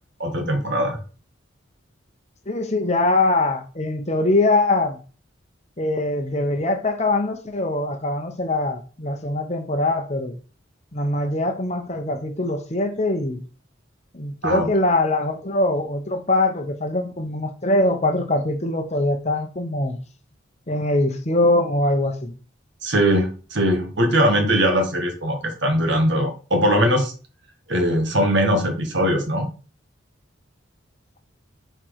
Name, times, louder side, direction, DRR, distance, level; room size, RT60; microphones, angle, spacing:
voice 1, 0.2-1.0 14.4-14.7 22.8-27.1 27.7-29.5, equal, 60° right, 1.6 m, -20 dB
voice 2, 2.5-5.0 5.8-10.4 10.9-13.4 14.1-20.0 20.7-22.4, left 2 dB, 35° left, 0.9 m, -22 dB
6.0 x 4.5 x 4.7 m
head